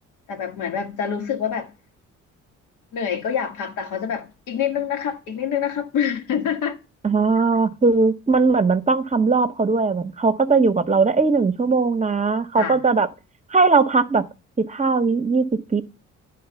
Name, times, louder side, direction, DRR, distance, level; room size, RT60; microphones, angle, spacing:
voice 1, 0.3-1.7 2.9-6.8 12.5-12.8, left 8 dB, 85° left, 1.7 m, -26 dB
voice 2, 7.0-13.1 13.5-14.3 14.6-15.8, right 4 dB, 25° right, 0.9 m, -19 dB
11.0 x 3.8 x 6.9 m
cardioid pair, 90°, 30 cm